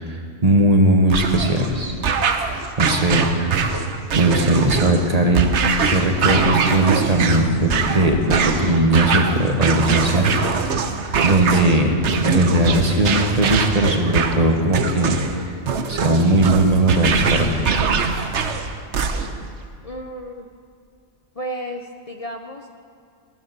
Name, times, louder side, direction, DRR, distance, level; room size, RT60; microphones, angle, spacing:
voice 1, 0.0-1.9 2.8-3.7 4.1-5.5 5.9-10.7 11.2-11.9 12.2-15.5 15.9-17.7, right 1 dB, 35° right, 3 dB, 1.4 m, -19 dB
sound 1, 1.1-19.5, right 5 dB, 75° right, 1.2 m, -23 dB
voice 2, 19.8-20.5 21.4-22.7, equal, 35° left, 3 dB, 0.8 m, -33 dB
15.0 x 11.5 x 6.7 m, 2.4 s
omnidirectional pair, 1.2 m